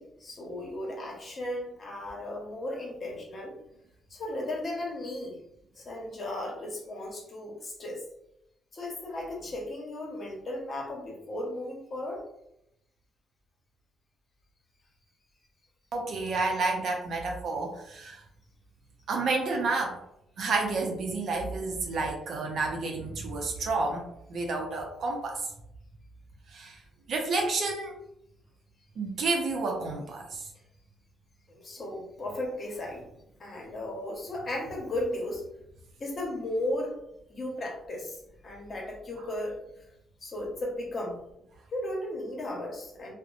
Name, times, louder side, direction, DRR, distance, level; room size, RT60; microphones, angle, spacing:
voice 1, 0.0-3.6 4.1-5.4 5.7-8.1 8.7-12.2 31.5-33.1 33.4-35.5 36.0-36.9 37.3-39.9 40.2-41.2 41.7-43.1, left 1 dB, 45° left, -1 dB, 0.9 m, -35 dB
voice 2, 15.9-18.2 19.1-20.0 20.4-24.0 24.3-25.4 26.5-26.8 27.1-28.0 29.0-30.5, right 3 dB, 65° right, 1 dB, 0.6 m, -30 dB
2.8 x 2.1 x 2.5 m, 0.78 s
cardioid pair, 90°, 0 cm